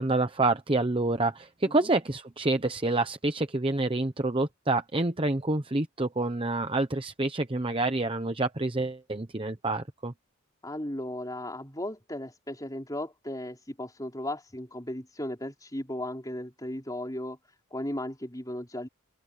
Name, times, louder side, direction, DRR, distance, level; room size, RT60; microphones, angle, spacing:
voice 1, 0.0-10.1, right 2 dB, 25° right, 0.9 m, -27 dB
voice 2, 10.6-17.4 17.7-18.9, left 1 dB, 15° left, 4.3 m, -36 dB
open air
head